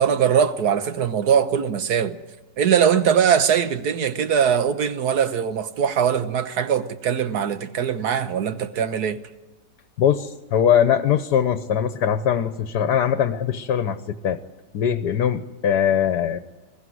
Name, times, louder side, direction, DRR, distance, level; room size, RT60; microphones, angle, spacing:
voice 1, 0.0-2.2 2.6-9.2, right 8 dB, 65° right, 1.5 m, -21 dB
voice 2, 10.0-14.4 14.7-16.4, left 9 dB, 70° left, 1.4 m, -21 dB
22.0 x 14.5 x 9.4 m
omnidirectional pair, 1.9 m